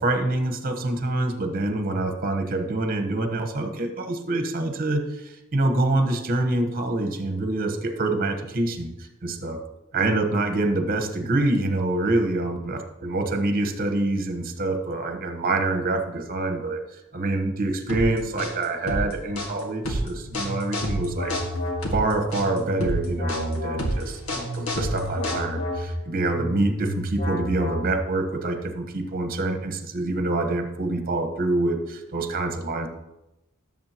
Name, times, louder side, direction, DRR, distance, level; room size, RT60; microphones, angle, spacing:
voice 1, 0.0-9.6 9.9-16.8 17.1-21.3 21.9-32.9, right 2 dB, 45° right, 6 dB, 1.2 m, -26 dB
sound 1, 17.9-25.8, equal, 70° left, 1.8 m, -29 dB
sound 2, 20.2-28.3, equal, 50° left, 2.8 m, -31 dB
17.0 x 7.5 x 3.0 m, 0.96 s
head